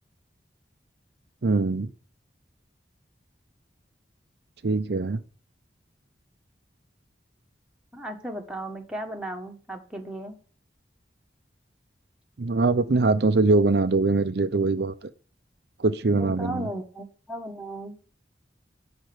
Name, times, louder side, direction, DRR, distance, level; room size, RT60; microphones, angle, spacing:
voice 1, 1.4-1.9 4.6-5.2 12.4-14.9 15.8-16.7, right 3 dB, 65° right, 0.6 m, -22 dB
voice 2, 7.9-10.4 16.1-18.0, right 1 dB, 5° right, 1.5 m, -36 dB
11.5 x 4.3 x 8.0 m
head